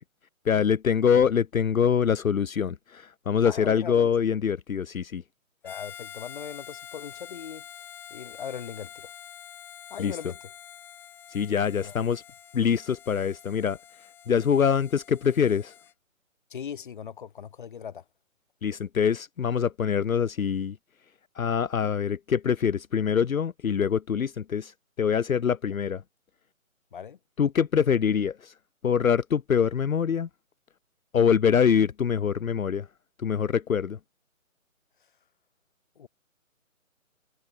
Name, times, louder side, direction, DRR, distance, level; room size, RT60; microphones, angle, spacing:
voice 1, 0.5-5.2 10.0-10.2 11.3-12.2 12.5-13.8 14.3-15.7 18.6-20.8 21.4-26.0 27.4-28.5 28.8-30.3 31.1-32.9 33.2-34.0, left 7 dB, 75° left, 0.6 m, -24 dB
voice 2, 3.4-4.1 5.6-7.6 8.1-9.1 9.9-10.4 11.8-12.0 16.5-18.0 26.9-27.2 36.0-36.1, left 8 dB, 35° left, 1.8 m, -39 dB
Harmonica, 5.6-15.9, left 10 dB, 5° left, 1.2 m, -46 dB
figure-of-eight pair, 145°, 42 cm